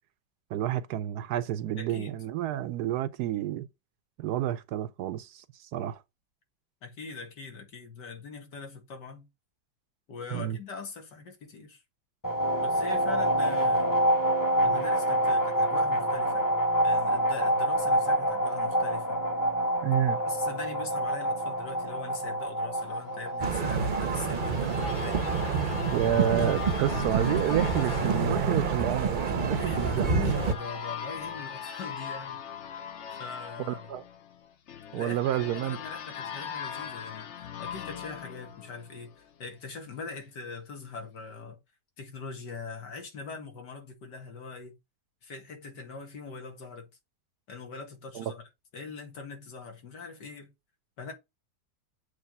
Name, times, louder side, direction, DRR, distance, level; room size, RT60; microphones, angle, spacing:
voice 1, 0.5-3.7 4.2-6.0 10.3-10.6 19.8-20.2 25.9-30.4 33.7-34.0 34.9-35.8 48.1-48.3, right 12 dB, 75° right, 1.1 m, -30 dB
voice 2, 1.8-2.1 6.8-9.3 10.1-11.8 12.6-14.0 14.6-16.5 16.8-19.2 20.1-25.3 29.5-32.4 33.1-34.0 34.9-41.6 42.0-44.8 45.2-46.9 47.5-48.4 48.7-50.5 51.0-51.1, left 4 dB, 80° left, 2.5 m, -42 dB
sound 1, 12.2-30.8, right 1 dB, 15° left, 1.0 m, -28 dB
sound 2, 23.4-30.5, right 5 dB, 40° right, 0.8 m, -28 dB
sound 3, 23.7-39.4, left 8 dB, 55° left, 0.9 m, -40 dB
7.7 x 3.4 x 5.3 m
omnidirectional pair, 1.8 m